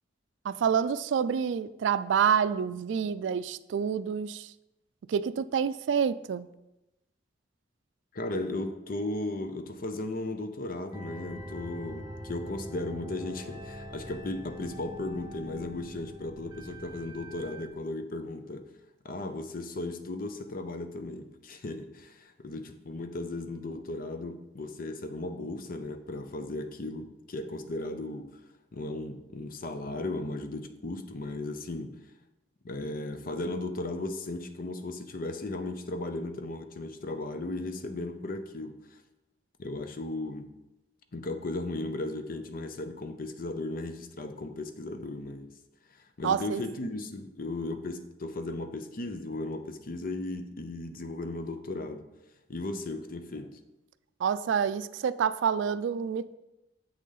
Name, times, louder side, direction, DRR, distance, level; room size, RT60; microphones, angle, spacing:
voice 1, 0.4-4.5 5.1-6.5 46.2-46.6 54.2-56.3, right 7 dB, 75° right, 15 dB, 0.3 m, -28 dB
voice 2, 8.1-18.7 19.0-28.4 28.7-32.0 32.6-39.0 39.6-40.5 41.1-45.5 45.9-52.1 52.5-53.6, left 2 dB, 50° left, 8 dB, 0.7 m, -36 dB
sound 1, 10.9-17.7, equal, 20° right, 1.3 m, -43 dB
7.5 x 6.4 x 3.9 m, 0.96 s
head